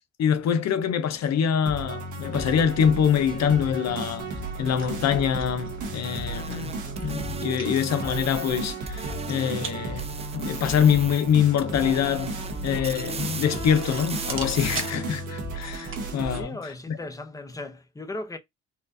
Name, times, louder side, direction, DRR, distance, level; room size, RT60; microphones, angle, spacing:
voice 1, 0.2-4.3 4.6-6.7 7.0-10.1 10.3-17.0, left 8 dB, 60° left, 0.6 m, -25 dB
sound 1, 1.7-16.4, right 2 dB, 75° right, 1.2 m, -34 dB
sound 2, 4.3-16.4, right 5 dB, 40° right, 1.0 m, -43 dB
sound 3, 5.9-9.7 10.0-11.3 11.6-14.9, right 5 dB, 20° right, 0.4 m, -38 dB
voice 2, 16.2-18.4, left 2 dB, 10° left, 0.7 m, -37 dB
4.3 x 2.5 x 2.6 m
cardioid pair, 90°, 30 cm